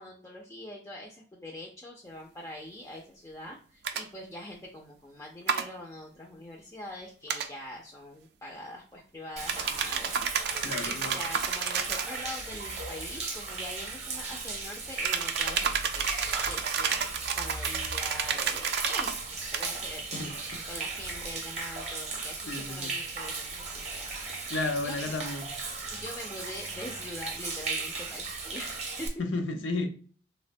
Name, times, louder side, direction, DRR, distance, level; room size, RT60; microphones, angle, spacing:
voice 1, 0.0-24.4 24.8-25.2 25.9-29.1, left 1 dB, 15° left, 0.3 m, -44 dB
sound 1, 3.8-4.0 5.5-5.7 7.3-7.5 9.5-12.1 15.0-19.2 19.5-19.7, right 7 dB, 55° right, 0.3 m, -31 dB
Human voice / Rain / Stream, 9.4-29.1, right 3 dB, 35° right, 0.7 m, -36 dB
voice 2, 10.6-11.2 20.1-20.3 22.5-22.9 24.5-25.4 29.2-29.9, left 2 dB, 85° left, 0.5 m, -32 dB
3.4 x 2.1 x 2.5 m
head